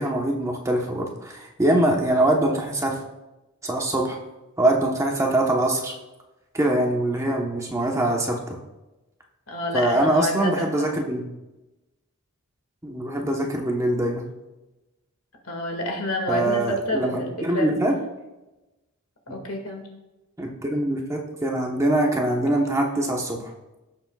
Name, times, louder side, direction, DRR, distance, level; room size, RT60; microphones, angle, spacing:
voice 1, 0.0-3.0 3.6-4.2 4.6-6.0 6.5-8.4 9.7-11.3 12.8-14.2 16.3-18.0 19.3-19.4 20.4-23.5, right 1 dB, 15° right, 0 dB, 1.0 m, -23 dB
voice 2, 9.5-11.0 15.4-17.7 19.3-19.8, left 1 dB, 80° left, 3 dB, 1.9 m, -29 dB
17.5 x 7.1 x 2.4 m, 1.0 s
head